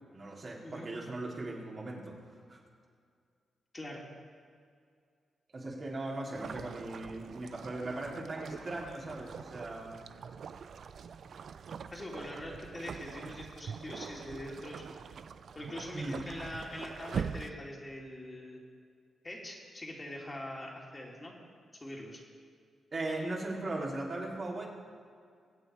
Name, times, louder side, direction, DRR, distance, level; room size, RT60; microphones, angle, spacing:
voice 1, 0.1-2.6 5.5-10.0 15.9-16.2 22.9-24.7, right 2 dB, 50° right, -3 dB, 3.7 m, -38 dB
sound 1, 6.3-17.5, right 6 dB, 65° right, 0.5 m, -43 dB
voice 2, 11.9-15.0 15.5-18.6 19.2-21.4 21.8-22.2, left 1 dB, 30° left, -2 dB, 3.1 m, -43 dB
22.0 x 8.3 x 4.8 m, 2.2 s
supercardioid pair, 45°, 0 cm